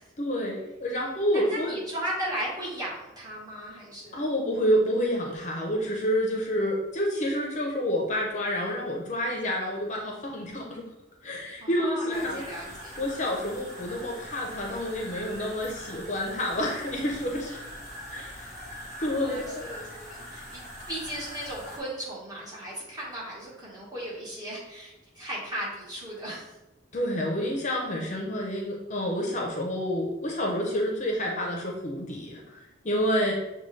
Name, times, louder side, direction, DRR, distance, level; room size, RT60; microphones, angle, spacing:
voice 1, 0.2-1.7 4.1-10.8 11.2-12.4 13.0-17.6 18.1-18.5 19.0-19.7 26.9-33.3, equal, 40° left, -1 dB, 0.6 m, -28 dB
voice 2, 1.3-4.2 11.6-13.0 19.1-26.5, right 1 dB, 20° right, -6 dB, 1.4 m, -36 dB
sound 1, 12.1-21.8, equal, 40° right, 1.4 m, -42 dB
6.7 x 2.3 x 3.2 m, 0.97 s
head